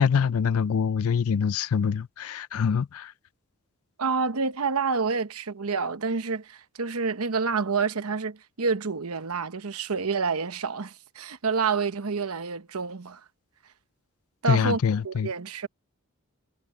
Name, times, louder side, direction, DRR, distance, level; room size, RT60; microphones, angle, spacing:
voice 1, 0.0-3.1 14.5-15.3, left 6 dB, 80° left, 0.4 m, -24 dB
voice 2, 4.0-13.2 14.4-14.8 15.0-15.7, right 5 dB, 85° right, 1.0 m, -28 dB
head